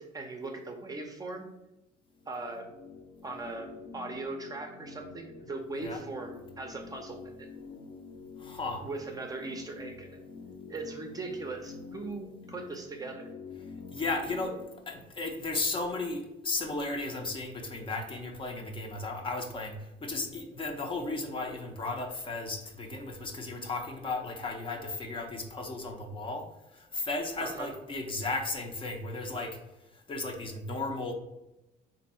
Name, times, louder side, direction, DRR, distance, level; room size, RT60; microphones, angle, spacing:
voice 1, 0.0-1.5 2.3-2.7 3.2-7.5 8.8-10.2 10.7-13.3 27.4-27.7, right 3 dB, 20° right, 3 dB, 0.6 m, -39 dB
sound 1, 2.1-14.6, left 5 dB, 60° left, 0.8 m, -47 dB
voice 2, 8.4-8.9 13.9-14.6 14.9-29.6 29.9-31.1, left 2 dB, 30° left, 3 dB, 0.6 m, -35 dB
3.5 x 2.7 x 4.2 m, 0.94 s
cardioid pair, 110°, 17 cm